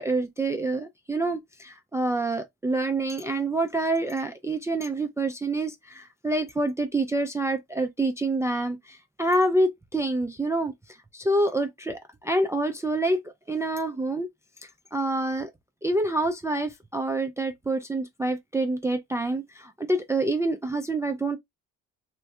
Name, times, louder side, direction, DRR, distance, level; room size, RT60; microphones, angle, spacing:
voice 1, 0.0-10.7 11.1-13.2 13.5-14.3 14.9-15.5 15.8-21.4, right 2 dB, 10° right, 0.3 m, -27 dB
2.6 x 2.1 x 3.4 m
cardioid pair, 90°, 30 cm